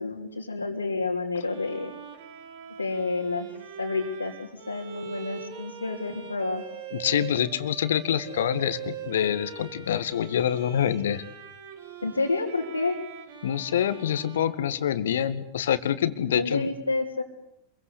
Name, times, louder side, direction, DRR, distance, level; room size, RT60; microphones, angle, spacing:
voice 1, 0.0-1.9 2.8-3.5 3.8-6.6 12.0-13.0 16.3-17.2, left 3 dB, 80° left, -3 dB, 3.1 m, -29 dB
Bowed string instrument, 1.4-15.3, right 9 dB, 55° right, 5.2 m, -42 dB
voice 2, 6.9-11.2 13.4-16.7, left 9 dB, 60° left, 12 dB, 2.0 m, -26 dB
26.5 x 23.0 x 8.3 m, 0.80 s
figure-of-eight pair, 90°, 0 cm